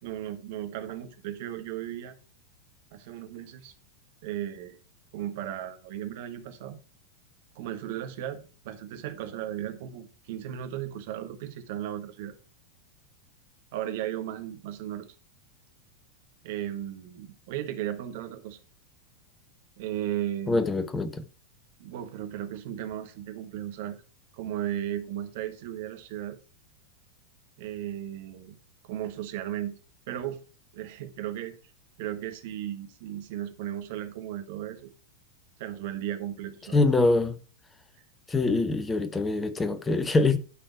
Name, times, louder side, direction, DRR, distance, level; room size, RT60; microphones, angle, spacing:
voice 1, 0.0-2.1 2.9-3.7 4.2-4.8 5.1-6.8 7.5-12.4 13.7-15.1 16.4-18.6 19.8-20.6 21.8-24.0 24.3-26.4 27.6-28.6 28.9-29.8 30.1-30.4 30.7-31.5 32.0-34.9 35.6-36.8, right 11 dB, 50° right, 1.3 m, -35 dB
voice 2, 20.5-21.3 36.7-37.4 38.3-40.4, left 3 dB, 15° left, 1.0 m, -24 dB
11.5 x 4.4 x 4.6 m
figure-of-eight pair, 90°, 0 cm